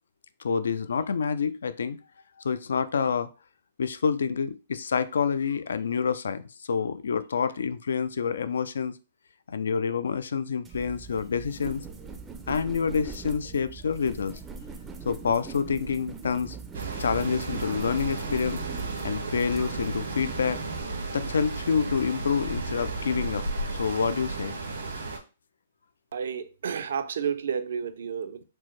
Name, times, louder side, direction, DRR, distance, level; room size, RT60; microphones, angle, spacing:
voice 1, 0.4-2.0 2.4-3.3 3.8-9.0 9.5-11.9 12.5-14.4 15.1-16.6 17.0-18.6 19.0-20.6 21.1-24.6, left 6 dB, 80° left, 0.3 m, -28 dB
sound 1, 10.6-20.8, right 5 dB, 15° right, 0.4 m, -42 dB
sound 2, 16.7-25.2, right 3 dB, 85° right, 1.2 m, -33 dB
voice 2, 26.1-28.4, right 7 dB, 70° right, 0.5 m, -31 dB
4.3 x 2.1 x 3.1 m
hypercardioid pair, 145°, 0 cm